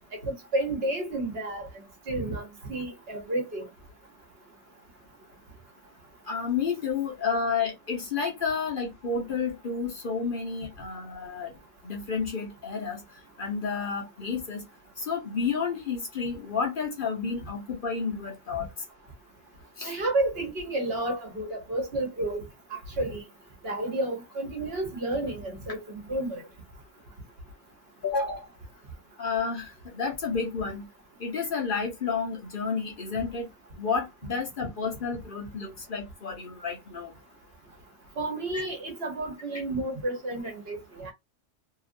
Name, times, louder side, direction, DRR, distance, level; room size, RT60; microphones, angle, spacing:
voice 1, 0.1-1.7 2.1-3.6 19.8-22.4 22.7-23.2 23.6-26.4 38.2-41.1, right 2 dB, 60° right, 1.1 m, -31 dB
voice 2, 6.3-11.5 11.8-13.0 13.4-14.6 15.0-18.7 19.8-19.9 28.0-28.4 29.2-30.9 31.2-33.5 33.8-37.1 38.5-38.6, left 5 dB, 50° left, 0.9 m, -31 dB
2.8 x 2.4 x 2.5 m
omnidirectional pair, 1.2 m